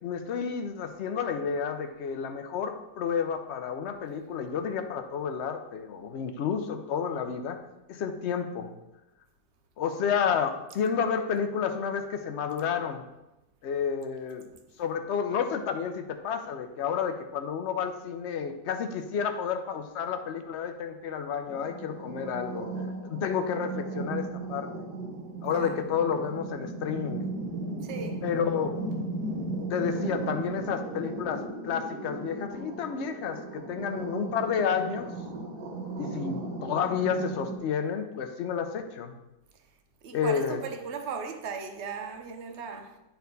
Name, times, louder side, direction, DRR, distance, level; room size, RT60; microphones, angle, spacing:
voice 1, 0.0-7.6 7.9-8.7 9.8-13.0 13.6-14.4 14.8-22.7 23.0-24.9 25.4-27.3 28.2-28.8 29.7-35.1 36.0-39.2 40.1-40.6, left 7 dB, 60° left, 0.7 m, -30 dB
sound 1, 21.5-37.6, right 2 dB, 85° right, 1.6 m, -36 dB
voice 2, 27.8-28.2 40.0-43.0, right 5 dB, 55° right, 0.9 m, -37 dB
9.3 x 4.4 x 4.0 m
omnidirectional pair, 1.7 m